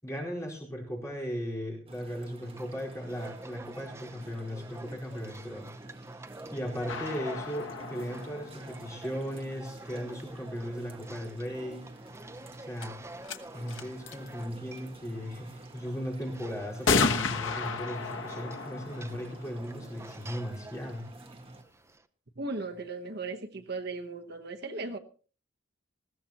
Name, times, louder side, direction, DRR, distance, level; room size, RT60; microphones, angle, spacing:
voice 1, 0.0-5.7 6.5-11.9 12.6-13.0 13.5-21.1, equal, 15° left, -3 dB, 4.5 m, -37 dB
sound 1, 1.9-21.6, right 2 dB, 30° right, 1.5 m, -49 dB
sound 2, 2.4-22.1, right 2 dB, 15° right, 0.7 m, -49 dB
sound 3, 6.9-9.6 12.2-12.3 12.8-12.9 13.2-13.4 13.7-14.3 15.5-15.6 16.9-20.4, left 4 dB, 80° left, 1.3 m, -33 dB
voice 2, 22.4-25.0, right 3 dB, 55° right, 6 dB, 1.1 m, -37 dB
20.0 x 15.5 x 3.0 m, 0.39 s
head